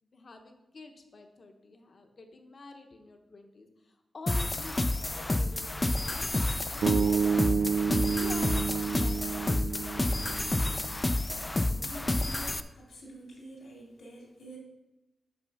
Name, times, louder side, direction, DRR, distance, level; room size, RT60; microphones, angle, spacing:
voice 1, 0.0-5.8 6.1-6.3 6.7-10.1, left 3 dB, 45° left, 5 dB, 1.0 m, -48 dB
sound 1, 4.3-12.6, left 2 dB, 20° left, 0.4 m, -30 dB
sound 2, 6.8-11.0, right 6 dB, 85° right, 0.4 m, -29 dB
voice 2, 11.8-14.6, right 1 dB, 75° left, -1 dB, 2.6 m, -47 dB
6.6 x 6.1 x 5.4 m, 0.99 s
wide cardioid pair, 125°, 0 cm